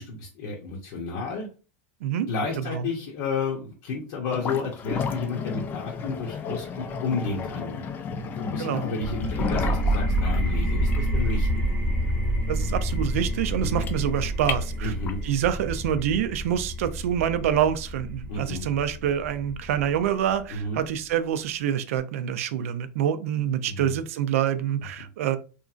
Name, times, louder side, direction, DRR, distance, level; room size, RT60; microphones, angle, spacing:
voice 1, 0.0-1.5 2.3-11.5 13.6-13.8 14.8-15.2 18.3-18.6 20.5-20.8 23.7-24.0, left 3 dB, 60° left, -1 dB, 0.8 m, -31 dB
voice 2, 2.6-2.9 8.6-8.9 12.5-14.9 15.2-25.4, right 9 dB, 85° right, 12 dB, 0.4 m, -26 dB
sound 1, 4.3-15.3, left 6 dB, 25° left, 0.3 m, -33 dB
sound 2, 9.0-20.4, right 1 dB, 5° right, 0.9 m, -28 dB
2.9 x 2.5 x 2.4 m, 0.35 s
supercardioid pair, 150°, 7 cm